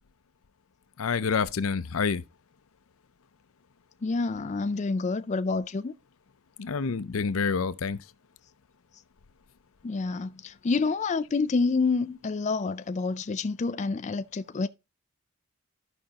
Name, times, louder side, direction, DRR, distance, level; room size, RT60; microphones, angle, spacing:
voice 1, 1.0-2.2 6.6-8.0, left 5 dB, 85° left, 0.6 m, -27 dB
voice 2, 4.0-5.9 9.8-14.7, left 4 dB, 35° left, 0.4 m, -28 dB
13.5 x 5.2 x 2.9 m
head